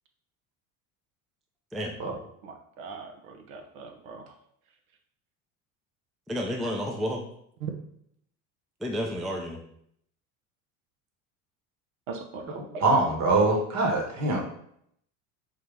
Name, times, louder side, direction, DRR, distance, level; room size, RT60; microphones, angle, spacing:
voice 1, 2.4-4.2 7.6-7.7 12.1-12.4 12.7-12.8, right 5 dB, 80° right, 4 dB, 0.7 m, -39 dB
voice 2, 6.3-7.3 8.8-9.6, equal, ahead, 1 dB, 0.3 m, -31 dB
voice 3, 12.5-14.4, right 2 dB, 40° right, 1 dB, 1.2 m, -24 dB
3.8 x 2.8 x 3.4 m, 0.70 s
hypercardioid pair, 85°, 41 cm